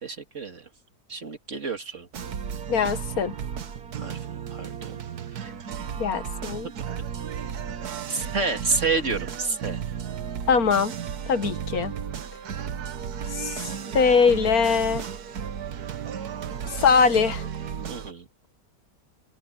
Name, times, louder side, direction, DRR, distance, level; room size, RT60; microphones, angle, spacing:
voice 1, 0.0-0.7 1.1-2.1 3.9-5.0 5.3-5.5 6.8-7.0 8.1-9.8 11.4-11.5 17.9-18.3, right 4 dB, 50° right, 2.6 m, -30 dB
sound 1, 2.1-18.1, right 8 dB, 90° right, 1.7 m, -34 dB
voice 2, 2.7-3.3 6.0-6.7 10.5-10.9 11.3-11.9 13.3-15.1 16.7-17.4, left 5 dB, 75° left, 1.7 m, -22 dB
open air
omnidirectional pair, 1.6 m